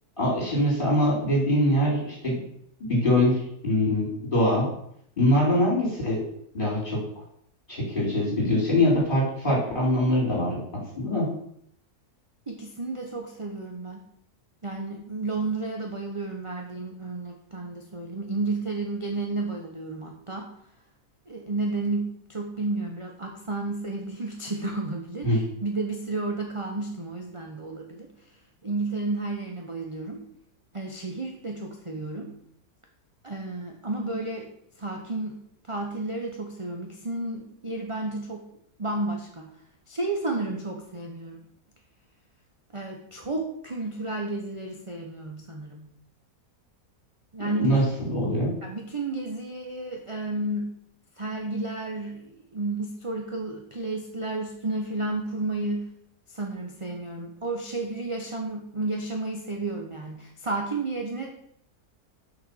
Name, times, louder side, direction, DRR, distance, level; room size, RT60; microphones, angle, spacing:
voice 1, 0.2-2.4 2.8-4.7 5.2-6.2 6.5-7.0 7.7-10.6 11.0-11.3 25.2-25.4 47.4-48.5, left 1 dB, 30° left, -4 dB, 4.5 m, -23 dB
voice 2, 12.5-14.0 14.6-20.5 21.3-28.1 28.6-30.2 30.7-32.3 33.2-34.5 34.8-35.4 35.7-38.5 38.8-39.5 39.9-41.4 42.7-45.9 47.3-48.1 48.6-50.7 51.2-55.9 56.3-61.4, right 2 dB, 25° right, 2 dB, 0.9 m, -32 dB
7.2 x 5.9 x 7.2 m, 0.71 s
omnidirectional pair, 1.6 m